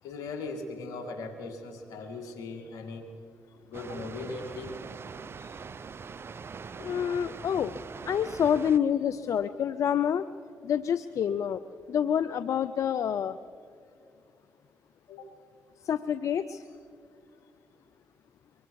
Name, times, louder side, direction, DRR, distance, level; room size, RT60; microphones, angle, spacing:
voice 1, 0.0-3.1 3.7-4.7 15.1-15.4, left 3 dB, 80° left, 6 dB, 2.2 m, -39 dB
Water, 3.7-8.8, right 5 dB, 45° right, 0.6 m, -42 dB
voice 2, 6.8-7.7 8.0-10.3 10.6-11.6 11.9-13.4 15.8-16.6, left 8 dB, 60° left, 13 dB, 0.5 m, -27 dB
23.5 x 23.5 x 4.7 m, 2.5 s
supercardioid pair, 55°, 6 cm